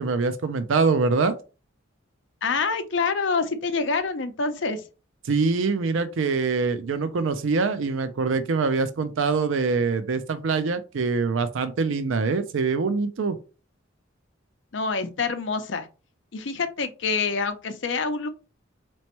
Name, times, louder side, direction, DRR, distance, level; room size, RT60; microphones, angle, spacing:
voice 1, 0.0-1.3 5.3-13.4, right 4 dB, 80° right, 0.5 m, -24 dB
voice 2, 2.4-4.8 14.7-15.9 16.3-18.3, left 4 dB, 70° left, 0.6 m, -26 dB
4.2 x 3.1 x 3.0 m
head